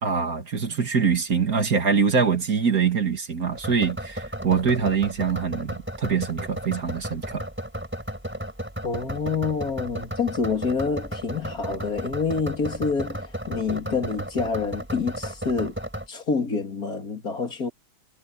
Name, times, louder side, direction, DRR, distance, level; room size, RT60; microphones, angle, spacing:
voice 1, 0.0-7.4, right 6 dB, 45° right, 2.4 m, -24 dB
sound 1, 3.5-16.1, equal, 5° right, 3.9 m, -34 dB
voice 2, 8.8-15.7 16.1-17.7, left 5 dB, 45° left, 3.2 m, -27 dB
omnidirectional pair, 2.2 m